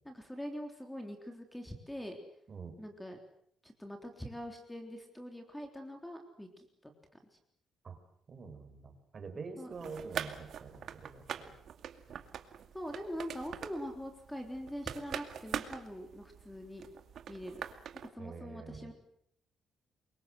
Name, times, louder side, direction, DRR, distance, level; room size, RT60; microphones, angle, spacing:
voice 1, 0.1-2.2 2.8-3.2 3.6-6.9 9.6-9.7 12.7-16.9 17.3-17.6 18.1-18.9, equal, 5° left, 4 dB, 3.6 m, -43 dB
voice 2, 8.3-11.5 12.1-12.2 18.2-18.9, right 4 dB, 35° right, 8 dB, 5.5 m, -46 dB
sound 1, 9.7-18.1, right 8 dB, 60° right, 2.3 m, -43 dB
28.0 x 24.0 x 7.8 m, 0.67 s
cardioid pair, 135°, 0 cm